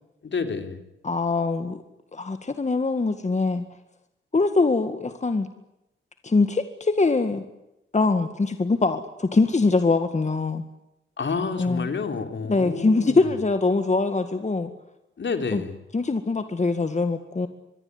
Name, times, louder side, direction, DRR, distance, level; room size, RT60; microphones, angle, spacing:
voice 1, 0.2-0.8 11.2-13.4 15.2-15.8, left 5 dB, 60° left, 7 dB, 3.5 m, -29 dB
voice 2, 1.0-1.8 2.1-3.6 4.3-5.5 6.2-7.4 7.9-10.6 11.6-11.9 12.5-14.7 15.5-15.6 15.9-17.5, left 3 dB, 35° left, 9 dB, 1.9 m, -23 dB
25.5 x 21.5 x 9.8 m, 0.88 s
cardioid pair, 85°, 21 cm